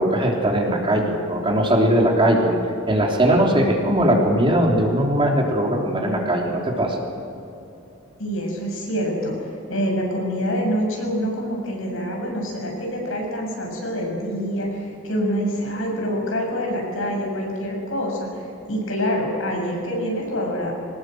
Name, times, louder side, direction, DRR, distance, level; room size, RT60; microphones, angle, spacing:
voice 1, 0.0-2.6 2.9-7.0, right 1 dB, 25° right, 0 dB, 3.5 m, -19 dB
voice 2, 8.2-20.7, equal, 75° left, 0 dB, 6.9 m, -26 dB
23.0 x 19.5 x 7.9 m, 2.8 s
head